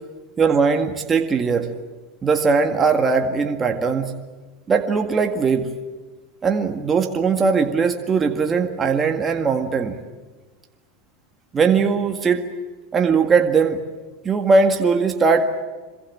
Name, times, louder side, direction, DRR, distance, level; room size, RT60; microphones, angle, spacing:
voice 1, 0.4-1.7 2.2-4.1 4.7-5.7 6.4-10.0 11.5-12.5 12.9-13.8 14.2-15.5, right 5 dB, 20° right, 4 dB, 1.9 m, -19 dB
26.5 x 23.0 x 8.7 m, 1.3 s
supercardioid pair, 130°, 0 cm